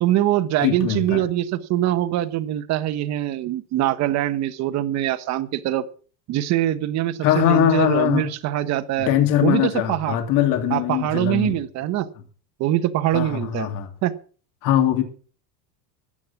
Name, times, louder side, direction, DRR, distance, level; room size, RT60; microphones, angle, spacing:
voice 1, 0.0-5.8 6.3-9.1 9.4-10.2 10.7-12.1 12.6-13.7 14.0-14.1, right 13 dB, 35° right, 11 dB, 1.2 m, -23 dB
voice 2, 0.6-1.2 7.2-8.3 9.0-11.6 13.1-13.9 14.6-15.0, left 11 dB, 40° left, 5 dB, 2.9 m, -21 dB
15.0 x 9.6 x 5.9 m, 0.41 s
cardioid pair, 165°, 47 cm